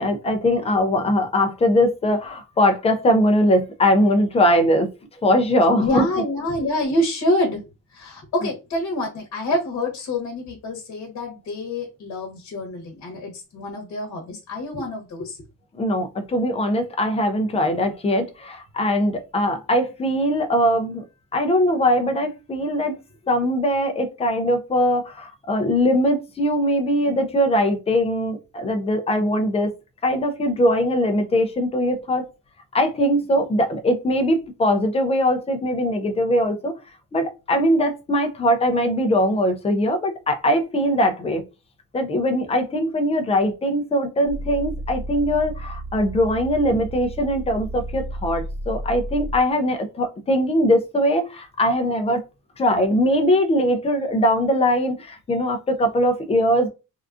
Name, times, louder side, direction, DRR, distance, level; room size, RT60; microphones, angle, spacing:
voice 1, 0.0-4.9 5.2-6.1 15.8-21.0 21.3-23.0 23.3-29.7 30.0-32.3 32.7-36.7 37.1-41.4 41.9-52.2 52.6-56.7, equal, 20° left, 0.3 m, -21 dB
voice 2, 5.8-7.6 7.9-15.4, left 1 dB, 50° left, 1.0 m, -26 dB
sound 1, 44.3-49.5, right 1 dB, 30° right, 0.7 m, -32 dB
3.6 x 2.3 x 2.4 m
cardioid pair, 175°, 36 cm